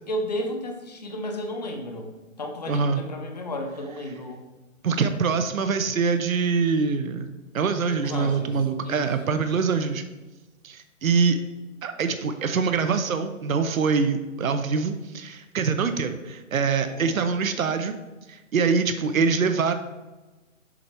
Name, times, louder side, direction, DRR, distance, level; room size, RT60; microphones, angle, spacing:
voice 1, 0.1-2.1 2.4-4.4 8.0-9.4 16.8-17.2, left 1 dB, 35° left, 3 dB, 0.6 m, -33 dB
voice 2, 2.7-3.0 4.8-10.0 10.6-11.4 11.8-18.0 18.3-19.7, right 5 dB, 85° right, 8 dB, 0.7 m, -24 dB
7.2 x 4.3 x 3.3 m, 1.1 s
hypercardioid pair, 170°, 40 cm